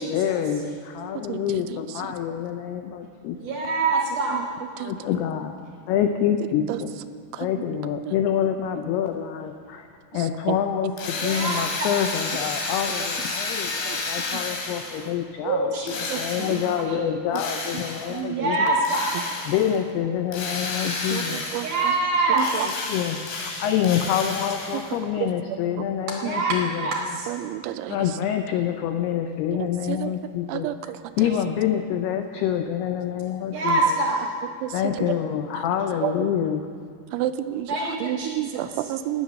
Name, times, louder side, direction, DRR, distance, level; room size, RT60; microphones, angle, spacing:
voice 1, 0.0-3.6 4.6-5.5 5.9-6.9 7.4-9.9 10.1-18.8 19.2-21.4 22.2-26.9 27.9-33.8 34.7-36.6, left 9 dB, 85° left, 6 dB, 2.3 m, -27 dB
voice 2, 3.4-4.5 11.2-11.9 15.4-16.5 18.3-19.2 21.6-22.4 26.2-27.3 33.5-34.3 37.7-38.6, right 3 dB, 60° right, -1 dB, 2.2 m, -25 dB
Drill, 11.0-15.1 15.9-16.8 17.4-18.2 18.9-19.8 20.3-22.0 22.3-25.0, left 3 dB, 70° left, 4.1 m, -31 dB
voice 3, 16.1-16.6 17.7-17.8 18.1-18.5 19.2-19.3 21.1-21.2 21.5-22.0 22.3-22.7 25.2-25.3 26.2-26.3 27.3-28.0 29.9-30.1 30.5-31.0 34.6-34.7 36.0-36.1 37.1-39.2, right 13 dB, 85° right, 10 dB, 3.0 m, -29 dB
19.0 x 8.0 x 6.4 m, 2.2 s
omnidirectional pair, 5.4 m